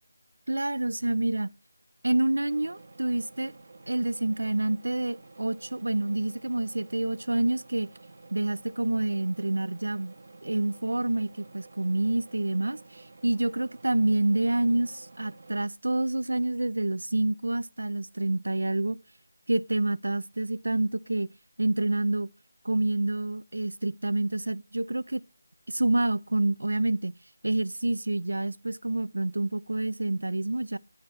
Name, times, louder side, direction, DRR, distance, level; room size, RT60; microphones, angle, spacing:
voice 1, 0.5-1.5 2.0-3.5 3.9-7.9 8.3-10.1 10.4-19.0 19.5-21.3 21.6-22.3 22.6-25.2 25.7-27.2 27.4-30.8, right 2 dB, 85° right, 0.4 m, -28 dB
sound 1, 2.4-15.7, right 3 dB, 55° right, 0.8 m, -51 dB
9.5 x 4.3 x 6.2 m
figure-of-eight pair, 175°, 0 cm